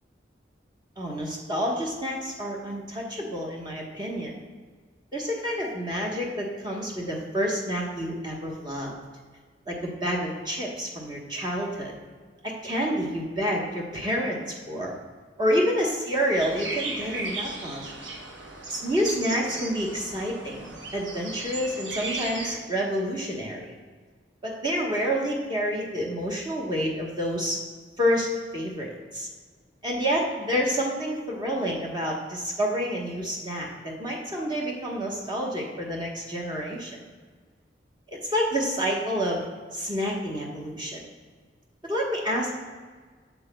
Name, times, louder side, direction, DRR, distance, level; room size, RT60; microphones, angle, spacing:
voice 1, 1.0-4.4 5.1-8.9 9.7-11.9 12.4-14.9 15.4-17.8 18.7-23.7 24.4-27.6 28.0-29.3 29.8-37.0 38.1-39.4 39.7-41.0 41.8-42.5, equal, 25° right, -2 dB, 1.2 m, -28 dB
sound 1, 16.4-22.6, right 2 dB, 85° right, 1.1 m, -36 dB
7.9 x 7.1 x 2.3 m, 1.5 s
head